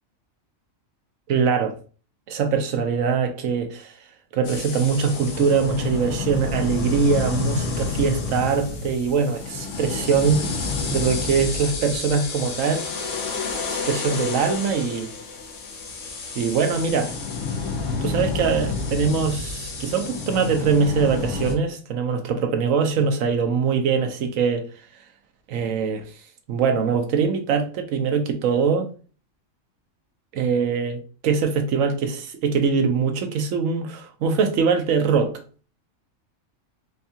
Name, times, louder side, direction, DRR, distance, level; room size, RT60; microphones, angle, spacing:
voice 1, 1.3-1.8 2.3-3.9 4.3-10.5 10.9-12.9 13.7-15.1 16.4-17.2 18.0-24.7 25.5-26.0 26.5-28.9 30.3-35.4, right 5 dB, 75° right, 1.1 m, -22 dB
sound 1, 4.4-21.5, left 4 dB, 65° left, 1.0 m, -29 dB
4.4 x 2.3 x 2.8 m
omnidirectional pair, 1.4 m